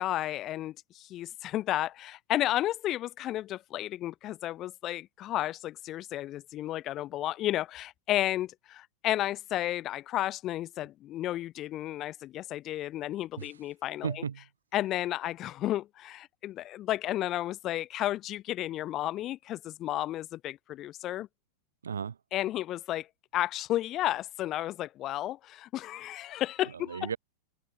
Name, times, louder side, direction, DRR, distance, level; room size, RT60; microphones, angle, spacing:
voice 1, 0.0-14.2 14.7-21.3 22.3-23.1 23.3-27.1, left 14 dB, 35° left, 0.5 m, -32 dB
voice 2, 14.0-14.5 21.8-22.2 26.7-27.2, right 7 dB, 70° right, 0.9 m, -35 dB
figure-of-eight pair, 90°, 0 cm